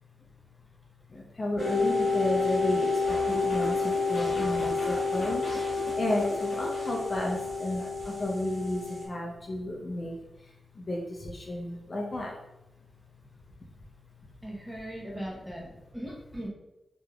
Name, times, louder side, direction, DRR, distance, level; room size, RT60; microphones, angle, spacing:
voice 1, 1.1-12.3, left 1 dB, 35° left, -2 dB, 0.5 m, -33 dB
sound 1, 1.6-9.0, left 4 dB, 90° right, 1.0 m, -29 dB
sound 2, 3.1-7.5 7.8-8.2, left 1 dB, 65° left, 1.1 m, -40 dB
voice 2, 14.4-15.6 15.9-16.5, equal, 5° right, -3 dB, 0.8 m, -39 dB
3.4 x 2.9 x 2.3 m, 0.94 s
wide cardioid pair, 140°, 0 cm